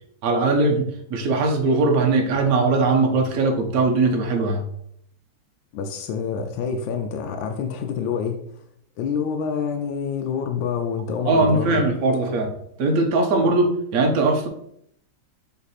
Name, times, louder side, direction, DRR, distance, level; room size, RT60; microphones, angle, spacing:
voice 1, 0.2-4.6 11.2-12.5 12.8-14.5, right 3 dB, 55° right, 3 dB, 1.2 m, -20 dB
voice 2, 5.7-8.4 9.0-11.8, left 6 dB, 80° left, 4 dB, 1.4 m, -27 dB
7.2 x 3.5 x 4.2 m, 0.71 s
omnidirectional pair, 2.1 m